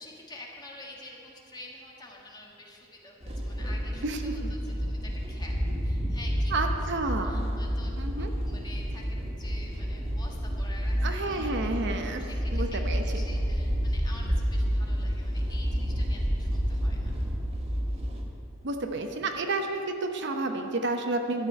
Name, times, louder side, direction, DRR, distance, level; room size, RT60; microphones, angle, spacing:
voice 1, 0.0-11.8 12.2-17.2, left 2 dB, 20° left, -2 dB, 1.7 m, -48 dB
sound 1, 3.2-18.2, equal, 30° right, 1.6 m, -30 dB
voice 2, 4.0-4.5 6.5-7.5 8.0-8.3 11.0-13.0 18.6-21.5, right 2 dB, 60° right, 4 dB, 0.9 m, -30 dB
13.0 x 5.4 x 9.3 m, 2.6 s
head